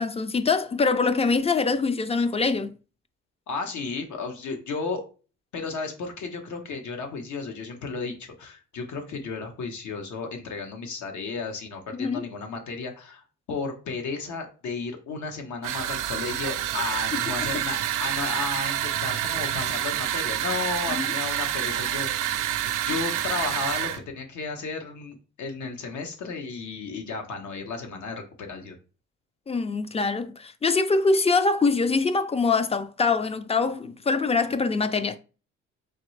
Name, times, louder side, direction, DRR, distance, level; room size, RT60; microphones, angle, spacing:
voice 1, 0.0-2.8 11.9-12.3 17.1-17.6 20.9-21.1 29.5-35.2, left 4 dB, 20° left, 0.4 m, -24 dB
voice 2, 3.5-5.0 5.5-22.4 22.8-28.8, left 4 dB, 70° left, 1.2 m, -33 dB
sound 1, 15.6-24.0, right 12 dB, 85° right, 0.5 m, -28 dB
4.2 x 3.1 x 3.2 m
cardioid pair, 90°, 30 cm